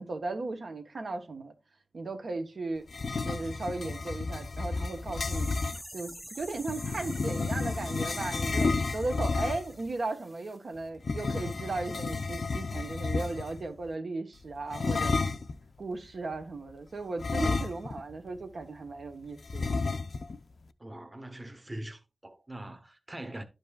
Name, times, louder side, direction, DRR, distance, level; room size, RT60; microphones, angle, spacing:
voice 1, 0.0-1.5 1.9-2.8 3.2-5.5 5.9-15.2 15.8-19.7, right 3 dB, 70° right, 1.2 m, -36 dB
sound 1, 2.9-5.8 6.6-9.8 11.0-13.6 14.7-15.6 17.2-18.1 18.4-18.5 19.5-20.4, left 3 dB, 70° left, 0.5 m, -31 dB
sound 2, 4.9-10.6 10.8-10.9, equal, 5° right, 1.0 m, -47 dB
voice 2, 20.8-23.4, right 1 dB, 25° right, 1.1 m, -42 dB
11.5 x 5.3 x 2.4 m
wide cardioid pair, 95°, 0 cm